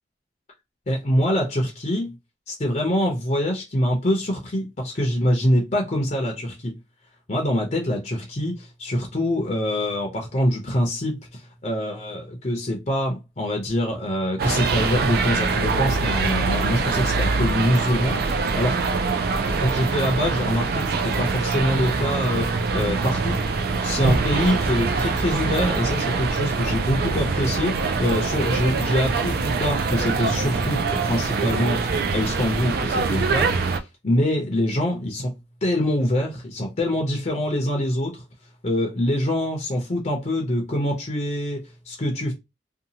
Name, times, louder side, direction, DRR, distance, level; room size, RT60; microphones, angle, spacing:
voice 1, 0.9-2.1 2.5-6.7 7.3-18.8 19.6-23.4 23.8-35.3 35.6-38.2 38.6-42.3, left 1 dB, 40° left, 0.6 m, -24 dB
sound 1, 14.4-33.8, right 4 dB, 55° right, 0.3 m, -24 dB
2.7 x 2.3 x 2.8 m
head